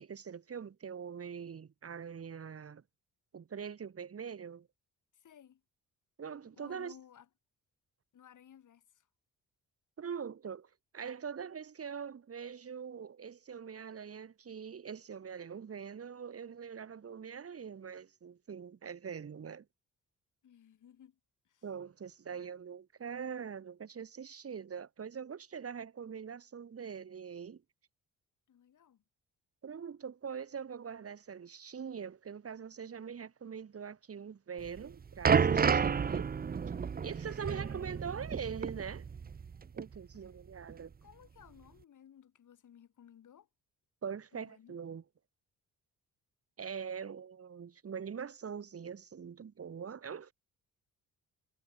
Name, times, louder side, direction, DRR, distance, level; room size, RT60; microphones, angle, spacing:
voice 1, 0.0-2.8 3.3-4.7 6.2-7.0 10.0-19.6 21.6-27.6 29.6-36.3 37.0-39.0 39.7-40.9 44.0-45.0 46.6-50.3, right 7 dB, 45° right, 3.5 m, -43 dB
voice 2, 5.1-5.6 6.5-7.3 8.1-9.1 20.4-21.2 21.5-21.6 22.3-22.4 28.5-29.0 40.1-40.2 41.0-43.5 44.3-44.9, left 9 dB, 60° left, 6.8 m, -58 dB
sound 1, 34.6-39.5 39.8-40.0 40.7-40.8, right 6 dB, 25° right, 0.7 m, -31 dB
cardioid pair, 105°, 34 cm